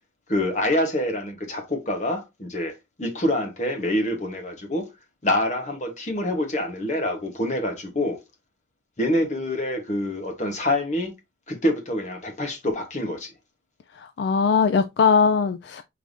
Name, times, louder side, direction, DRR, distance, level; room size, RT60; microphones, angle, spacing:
voice 1, 0.3-4.9 5.2-8.2 9.0-11.1 11.5-13.3, left 1 dB, 40° left, 1.0 m, -26 dB
voice 2, 14.0-15.8, left 5 dB, 70° left, 0.3 m, -20 dB
4.9 x 3.4 x 2.5 m
head